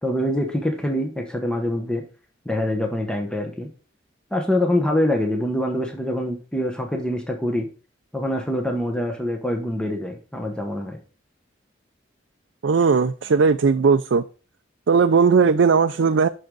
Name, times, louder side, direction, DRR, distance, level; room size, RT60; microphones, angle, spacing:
voice 1, 0.0-2.0 2.4-3.7 4.3-7.7 8.1-11.0, left 1 dB, 5° left, 1.1 m, -25 dB
voice 2, 12.6-14.2 14.9-16.3, right 5 dB, 75° right, 0.4 m, -17 dB
7.8 x 6.4 x 3.9 m
head